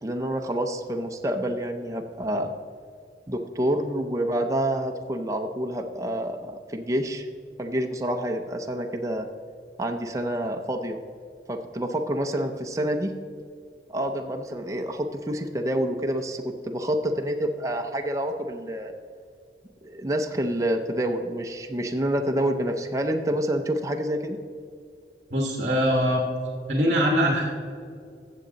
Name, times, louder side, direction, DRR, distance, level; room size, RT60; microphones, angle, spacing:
voice 1, 0.0-2.5 3.3-7.3 7.6-9.3 9.8-11.0 11.5-13.1 13.9-18.9 19.8-24.4, right 1 dB, 20° right, 3 dB, 0.6 m, -28 dB
voice 2, 25.3-26.2 26.7-27.5, equal, 40° right, 0 dB, 1.3 m, -22 dB
14.0 x 7.5 x 4.0 m, 2.3 s
head